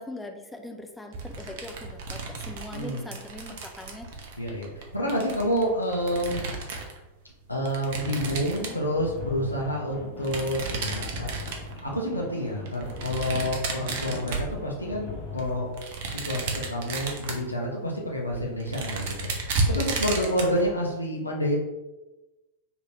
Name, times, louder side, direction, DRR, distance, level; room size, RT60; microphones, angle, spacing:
voice 1, 0.0-4.1 19.7-20.4, left 1 dB, 5° left, 4 dB, 0.3 m, -41 dB
sound 1, 1.1-7.0 7.7-9.2 10.2-11.9 12.7-15.0 15.4-17.5 18.0-18.1 18.3-20.6, right 3 dB, 50° right, 0.5 m, -33 dB
voice 2, 2.7-3.0 4.4-6.4 7.5-11.3 11.8-15.7 16.0-21.6, equal, 85° left, -2 dB, 0.5 m, -29 dB
sound 2, 7.9-15.8, left 3 dB, 35° left, 0.9 m, -40 dB
2.6 x 2.5 x 3.2 m, 1.1 s
figure-of-eight pair, 90°, 0 cm